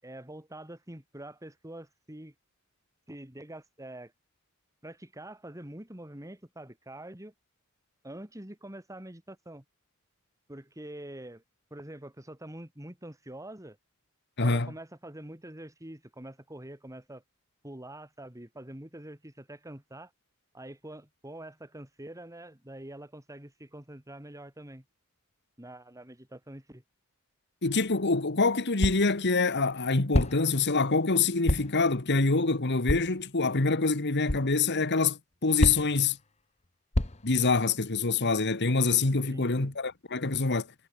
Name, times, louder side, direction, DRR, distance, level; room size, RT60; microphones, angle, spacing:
voice 1, 0.0-2.3 3.1-4.1 4.8-7.3 8.0-9.6 10.5-11.4 11.7-13.8 14.4-17.2 17.6-20.1 20.5-24.8 25.6-26.8 39.3-39.7, right 1 dB, 15° right, 2.6 m, -45 dB
voice 2, 14.4-14.7 27.6-36.2 37.2-40.7, left 3 dB, 50° left, 1.6 m, -26 dB
sound 1, 27.7-27.8 28.8-29.2 30.1-30.6 31.5-31.8 32.9-33.2 34.3-34.5 35.6-36.0 36.9-37.4, left 1 dB, 30° left, 1.4 m, -28 dB
head